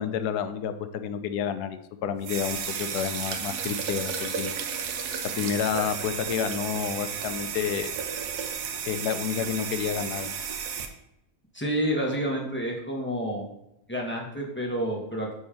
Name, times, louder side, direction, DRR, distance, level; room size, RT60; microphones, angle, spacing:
voice 1, 0.0-4.5 5.3-7.9 8.9-10.3, left 8 dB, 80° left, 10 dB, 1.1 m, -30 dB
sound 1, 2.2-10.9, right 6 dB, 85° right, 1.3 m, -33 dB
voice 2, 11.5-13.5 13.9-15.3, equal, 10° left, -1 dB, 0.9 m, -29 dB
5.5 x 4.3 x 4.9 m, 0.82 s
omnidirectional pair, 1.7 m